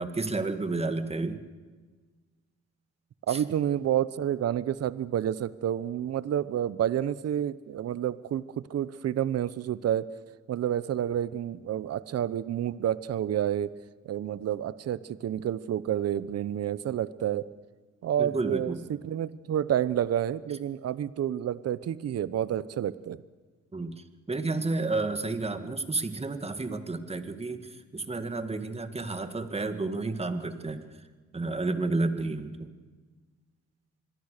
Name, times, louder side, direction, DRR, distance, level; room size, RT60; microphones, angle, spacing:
voice 1, 0.0-1.4 3.3-3.4 18.2-18.8 23.7-30.8 31.3-32.7, right 3 dB, 20° right, 9 dB, 2.0 m, -31 dB
voice 2, 3.3-10.1 10.5-13.7 14.0-17.5 18.0-23.2, right 10 dB, 55° right, 17 dB, 0.8 m, -29 dB
26.0 x 22.0 x 6.7 m, 1.4 s
cardioid pair, 90°, 30 cm